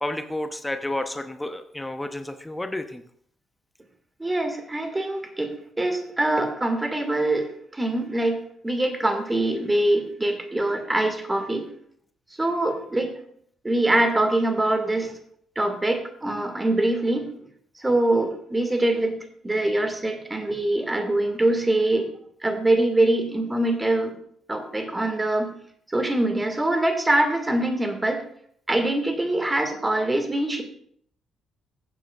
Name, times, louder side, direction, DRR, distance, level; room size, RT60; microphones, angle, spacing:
voice 1, 0.0-3.0, left 1 dB, 10° left, 9 dB, 0.8 m, -31 dB
voice 2, 4.2-8.4 8.6-11.7 12.4-13.1 13.6-15.1 15.6-17.3 17.8-22.1 22.4-24.1 24.5-25.5 25.9-28.3 28.7-30.6, right 1 dB, 15° right, 6 dB, 2.0 m, -24 dB
15.0 x 8.4 x 2.4 m, 0.63 s
figure-of-eight pair, 45°, 0 cm